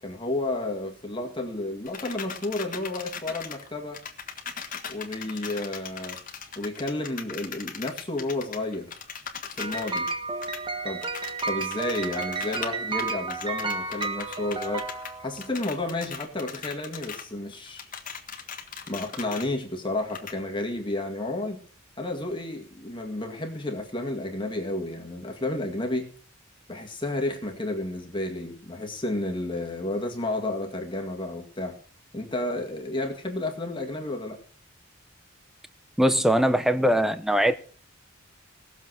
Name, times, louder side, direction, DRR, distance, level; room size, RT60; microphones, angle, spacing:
voice 1, 0.0-4.0 4.9-6.2 6.6-8.9 9.5-10.1 10.8-11.0 11.5-14.8 15.2-17.9 18.9-21.6 22.0-26.1 26.7-31.8 32.1-34.4, left 2 dB, 25° left, 1.9 m, -31 dB
sound 1, 1.9-3.7 3.9-10.2 10.4-10.6 11.0-12.7 13.0-15.1 15.4-17.3 17.5-19.5 20.1-20.3, left 7 dB, 40° left, 1.7 m, -39 dB
sound 2, 9.6-15.6, right 4 dB, 25° right, 1.1 m, -32 dB
voice 2, 36.0-37.6, equal, ahead, 0.6 m, -21 dB
18.0 x 7.2 x 6.4 m
head